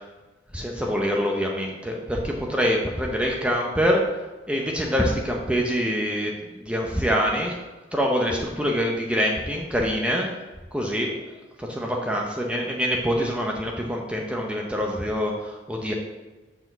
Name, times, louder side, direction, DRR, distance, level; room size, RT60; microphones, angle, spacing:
voice 1, 0.5-4.0 4.5-7.6 7.9-10.4 10.7-11.1 11.6-15.9, equal, 5° right, 0 dB, 0.6 m, -25 dB
6.0 x 4.8 x 6.5 m, 1.2 s
head